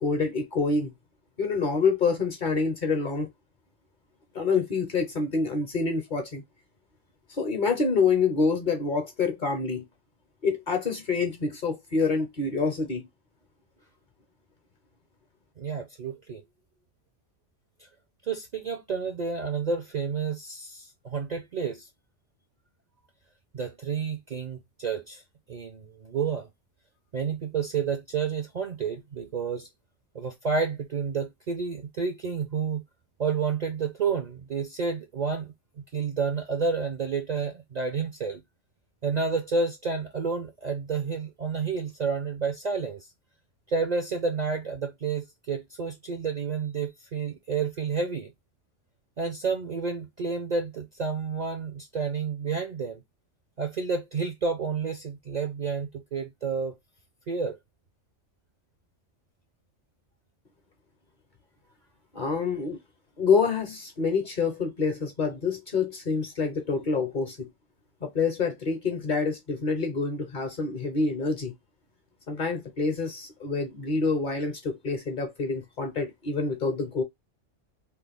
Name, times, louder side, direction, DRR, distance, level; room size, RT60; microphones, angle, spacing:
voice 1, 0.0-0.9 1.4-3.3 4.3-6.4 7.3-9.8 10.4-13.1 62.1-62.8 63.2-67.5 68.0-71.5 72.3-77.0, left 4 dB, 45° left, 0.7 m, -27 dB
voice 2, 15.6-16.4 17.8-17.9 18.2-21.9 23.5-25.2 25.5-26.5 27.1-29.7 30.1-32.8 33.2-38.4 39.0-43.1 43.7-48.3 49.2-53.0 53.6-56.8 57.3-57.6, right 5 dB, 50° right, 0.5 m, -30 dB
3.1 x 2.2 x 3.3 m
omnidirectional pair, 1.3 m